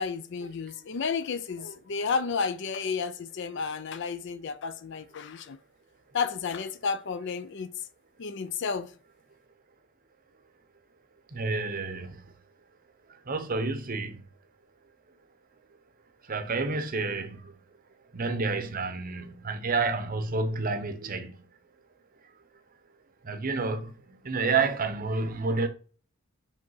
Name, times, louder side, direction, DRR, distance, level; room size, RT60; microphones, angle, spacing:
voice 1, 0.0-5.6 6.1-7.7 8.2-8.9, left 5 dB, 55° left, 0.5 m, -32 dB
voice 2, 11.3-12.3 13.1-14.2 16.2-17.5 18.1-21.5 23.2-25.7, right 4 dB, 40° right, 0.7 m, -30 dB
5.2 x 3.5 x 5.6 m
head